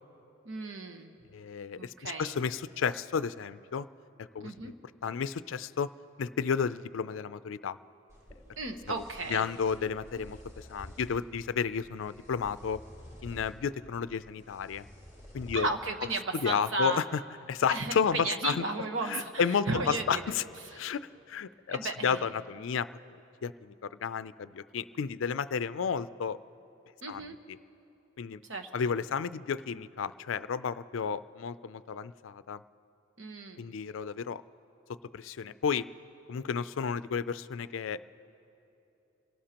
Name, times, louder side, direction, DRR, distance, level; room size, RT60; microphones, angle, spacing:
voice 1, 0.4-1.1 1.8-2.4 4.4-4.7 8.6-9.5 15.5-17.0 17.7-20.2 20.6-20.8 21.7-22.3 22.6-22.8 27.0-27.4 28.4-28.7 33.2-33.6, right 3 dB, 80° right, 5 dB, 1.2 m, -34 dB
voice 2, 1.3-3.9 4.2-4.7 5.0-5.9 6.2-7.8 9.3-12.8 13.2-14.9 15.3-15.7 16.4-17.0 17.5-18.6 19.1-20.4 20.7-23.2 23.4-26.4 27.1-27.2 28.2-28.4 28.7-32.6 33.6-34.4 35.1-35.9 36.3-38.0, left 6 dB, 75° left, 15 dB, 0.4 m, -32 dB
sound 1, 8.1-15.6, equal, 15° right, 3.2 m, -51 dB
27.5 x 17.5 x 2.9 m, 2.9 s
head